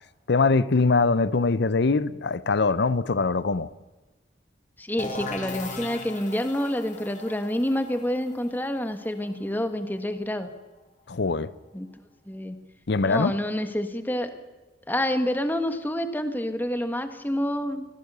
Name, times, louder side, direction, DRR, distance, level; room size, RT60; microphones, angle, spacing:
voice 1, 0.3-3.7 11.1-11.5 12.9-13.3, left 3 dB, 65° left, 0.7 m, -22 dB
voice 2, 4.8-10.5 11.7-11.9 12.2-12.6 13.0-14.3 14.9-17.9, left 1 dB, 10° left, 1.5 m, -28 dB
sound 1, 5.0-10.6, left 2 dB, 40° left, 2.4 m, -39 dB
24.5 x 16.0 x 6.9 m
head